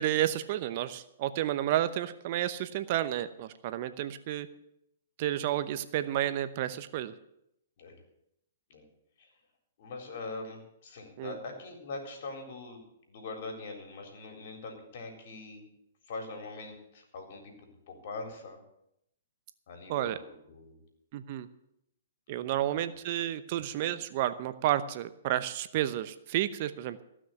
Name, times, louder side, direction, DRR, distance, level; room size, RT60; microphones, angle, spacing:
voice 1, 0.0-4.5 5.2-7.1 11.2-11.4 19.9-20.2 21.1-21.5 22.3-27.0, right 12 dB, 45° right, 12 dB, 0.8 m, -31 dB
voice 2, 9.8-15.7 16.1-18.6 19.7-20.8 22.5-22.6, left 3 dB, 55° left, 3 dB, 3.8 m, -43 dB
15.5 x 6.2 x 9.2 m, 0.78 s
hypercardioid pair, 125°, 0 cm